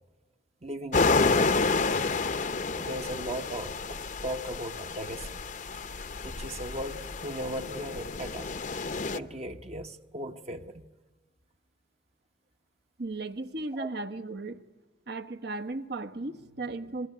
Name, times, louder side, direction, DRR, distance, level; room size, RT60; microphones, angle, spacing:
voice 1, 0.6-1.6 2.8-5.4 6.2-8.5 9.1-10.9 13.7-13.9, right 1 dB, 35° right, 1.0 m, -37 dB
sound 1, 0.9-9.2, left 4 dB, 45° left, 0.8 m, -29 dB
voice 2, 13.0-14.6 15.1-17.1, right 2 dB, 60° right, 1.2 m, -36 dB
28.0 x 21.5 x 9.5 m
head